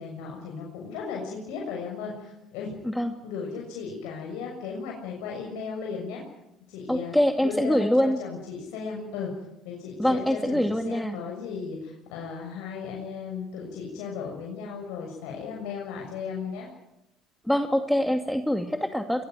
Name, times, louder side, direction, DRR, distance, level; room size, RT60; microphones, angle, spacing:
voice 1, 0.0-2.7 3.2-6.2 6.7-7.1 7.4-9.3 9.6-16.7, left 5 dB, 80° left, -1 dB, 6.7 m, -36 dB
voice 2, 6.9-8.2 10.0-11.2 17.5-19.3, equal, 5° left, 6 dB, 2.3 m, -24 dB
23.0 x 22.0 x 9.5 m, 0.88 s
supercardioid pair, 80°, 0 cm